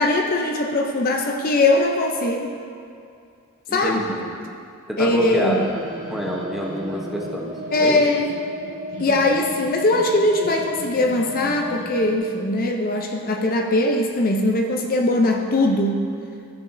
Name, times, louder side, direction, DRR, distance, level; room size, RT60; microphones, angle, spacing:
voice 1, 0.0-2.5 3.7-4.0 5.0-5.6 7.7-8.3 9.0-16.0, left 2 dB, 40° left, 2 dB, 0.5 m, -20 dB
voice 2, 3.7-4.2 4.9-5.8 6.1-7.5 7.8-8.0 9.1-9.2, left 1 dB, ahead, -2 dB, 0.8 m, -27 dB
sound 1, 5.1-12.2, equal, 70° right, 1.4 m, -34 dB
13.0 x 6.7 x 2.6 m, 2.4 s
head